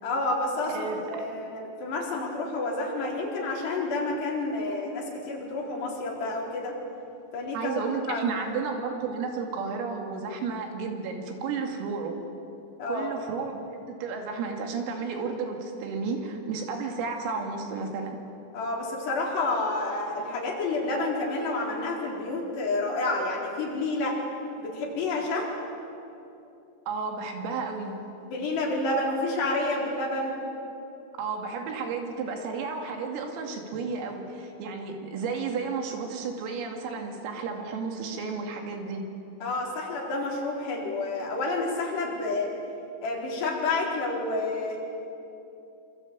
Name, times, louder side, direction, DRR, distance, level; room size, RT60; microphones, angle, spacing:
voice 1, 0.0-6.8 7.3-7.8 8.1-8.4 12.8-13.1 18.5-24.2 24.6-25.5 28.3-30.4 39.4-42.5 43.0-44.8, left 2 dB, 55° left, -1 dB, 6.1 m, -29 dB
voice 2, 0.7-1.1 7.5-12.2 12.9-13.6 13.9-18.2 26.9-28.0 31.1-39.0, right 5 dB, 80° right, 3 dB, 5.2 m, -32 dB
26.0 x 25.5 x 8.8 m, 2.8 s
omnidirectional pair, 5.9 m